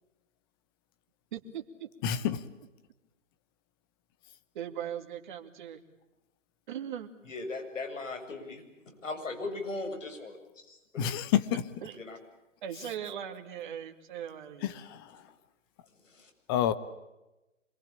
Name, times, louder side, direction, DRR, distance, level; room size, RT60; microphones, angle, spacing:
voice 1, 1.3-1.9 4.5-5.8 6.7-7.1 11.8-12.0 12.6-14.8, right 9 dB, 40° right, 4 dB, 2.6 m, -39 dB
voice 2, 2.0-2.4 11.0-11.6 14.6-15.1 16.5-16.7, left 10 dB, 20° left, 13 dB, 0.9 m, -28 dB
voice 3, 7.3-8.6 9.0-10.3 10.7-11.0 12.0-12.2 16.1-16.3, left 3 dB, 75° left, 4 dB, 7.4 m, -38 dB
26.0 x 21.5 x 8.7 m, 0.99 s
figure-of-eight pair, 145°, 39 cm